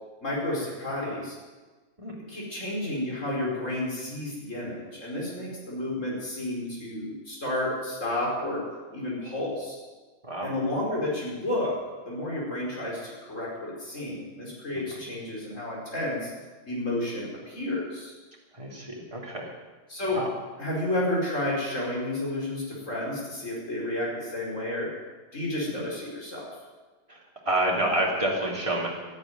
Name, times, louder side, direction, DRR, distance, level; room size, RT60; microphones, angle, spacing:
voice 1, 0.2-1.4 2.3-8.6 8.9-9.8 10.4-11.8 12.1-16.3 16.7-18.1 19.9-20.2 20.6-24.9 25.3-26.5, left 1 dB, 85° left, -4 dB, 5.3 m, -31 dB
voice 2, 18.5-19.5 20.1-20.3 27.1-27.2 27.4-28.9, right 1 dB, 25° right, -2 dB, 3.4 m, -28 dB
13.0 x 11.0 x 9.5 m, 1.3 s
omnidirectional pair, 1.3 m